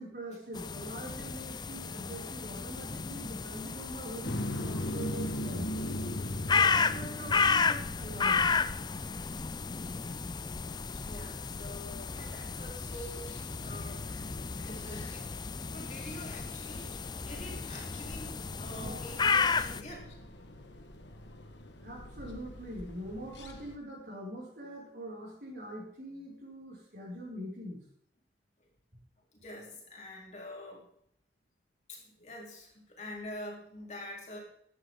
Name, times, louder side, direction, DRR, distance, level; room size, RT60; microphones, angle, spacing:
voice 1, 0.0-5.9 6.7-8.5 18.8-19.1 21.8-27.8, equal, 60° right, -4 dB, 6.8 m, -43 dB
sound 1, 0.5-19.8, left 5 dB, 25° left, 0.5 m, -33 dB
sound 2, 4.2-23.8, left 1 dB, 90° left, 1.7 m, -42 dB
voice 2, 6.5-7.0 11.1-13.3 13.6-14.1 14.7-15.3 15.6-20.1 29.4-30.9 31.9-34.4, left 1 dB, 40° left, -2 dB, 4.1 m, -46 dB
15.5 x 11.0 x 4.0 m, 0.70 s
head